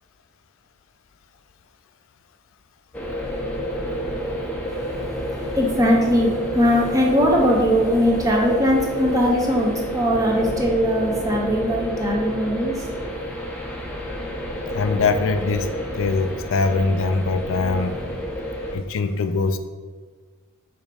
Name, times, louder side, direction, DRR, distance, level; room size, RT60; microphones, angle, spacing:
sound 1, 2.9-18.8, equal, 5° left, 0.6 m, -29 dB
voice 1, 5.3-12.9, equal, 15° right, -1 dB, 0.9 m, -20 dB
voice 2, 14.7-15.7 16.0-18.0 18.7-19.6, left 3 dB, 60° left, 8 dB, 0.4 m, -22 dB
5.1 x 3.8 x 5.1 m, 1.5 s
head